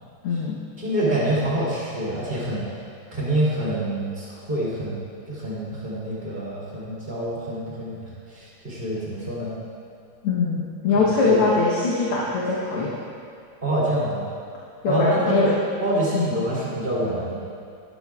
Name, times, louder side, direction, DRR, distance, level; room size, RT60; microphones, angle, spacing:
voice 1, 0.2-0.6 10.2-12.9 14.8-15.5 16.1-16.3, left 3 dB, 75° left, -5 dB, 2.0 m, -22 dB
voice 2, 0.8-2.6 3.1-5.0 5.2-9.5 10.9-11.4 13.6-14.3 14.8-15.5 15.8-17.4, right 1 dB, 25° right, -8 dB, 3.0 m, -26 dB
12.5 x 11.5 x 2.4 m, 2.3 s
omnidirectional pair, 2.4 m